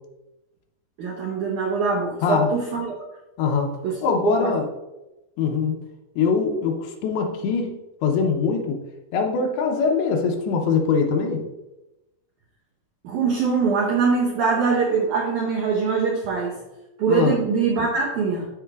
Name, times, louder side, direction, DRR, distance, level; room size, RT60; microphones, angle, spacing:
voice 1, 1.0-3.0 3.8-4.5 13.0-16.6 17.0-18.5, right 5 dB, 85° right, -1 dB, 1.7 m, -23 dB
voice 2, 3.4-3.7 4.0-4.6 5.4-5.8 6.2-8.8 9.1-11.4 17.1-17.4, left 5 dB, 80° left, 2 dB, 2.9 m, -22 dB
12.5 x 4.7 x 2.4 m, 0.97 s
omnidirectional pair, 4.5 m